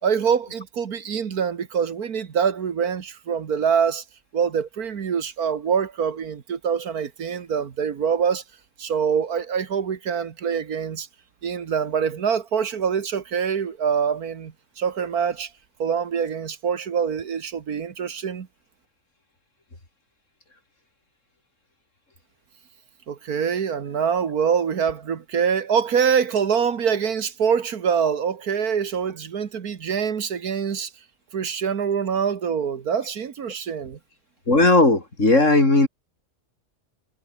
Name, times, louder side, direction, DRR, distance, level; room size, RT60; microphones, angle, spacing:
voice 1, 0.0-4.0 4.3-8.4 8.8-11.1 11.4-15.5 15.8-18.5 23.1-30.9 31.3-34.0, right 7 dB, 80° right, 2.0 m, -24 dB
voice 2, 34.5-35.9, left 2 dB, 50° left, 5.2 m, -16 dB
omnidirectional pair, 1.6 m